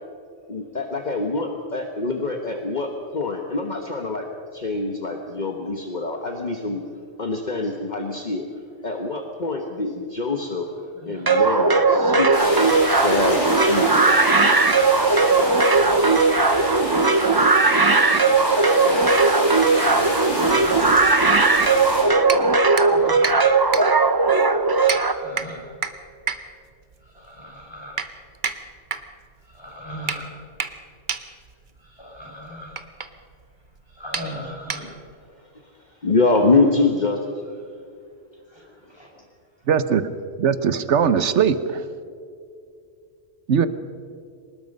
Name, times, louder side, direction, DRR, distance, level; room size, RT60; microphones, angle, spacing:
voice 1, 0.5-4.3 4.5-6.8 7.2-8.5 8.8-10.7 11.1-14.4 36.0-37.2, left 3 dB, 40° left, 3 dB, 1.4 m, -25 dB
voice 2, 10.9-11.4 17.8-18.7 19.9-20.8 22.4-23.3 24.8-25.6 27.0-28.0 29.4-30.3 31.8-32.8 33.9-34.9 37.7-37.8 38.5-39.2, equal, 20° left, -2 dB, 5.8 m, -40 dB
sound 1, 11.3-25.1, right 3 dB, 20° right, 0.8 m, -18 dB
sound 2, 12.3-22.0, left 1 dB, 85° left, 7.5 m, -29 dB
sound 3, 22.2-35.3, right 5 dB, 45° right, 1.1 m, -33 dB
voice 3, 39.7-40.1 40.4-41.9 43.5-43.7, right 7 dB, 85° right, 13 dB, 1.2 m, -20 dB
24.0 x 20.0 x 5.4 m, 2.3 s
omnidirectional pair, 1.2 m